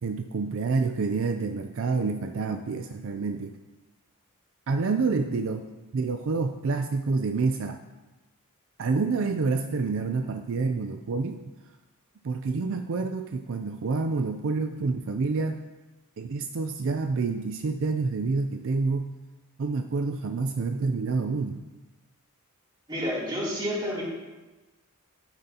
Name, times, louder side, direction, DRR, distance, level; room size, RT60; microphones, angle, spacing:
voice 1, 0.0-3.6 4.7-5.7 5.9-7.8 8.8-11.4 12.2-15.6 16.2-19.1 19.6-21.6, right 4 dB, 65° right, 6 dB, 0.4 m, -28 dB
voice 2, 22.9-24.0, equal, 20° right, -7 dB, 2.9 m, -29 dB
11.5 x 9.0 x 2.8 m, 1.2 s
head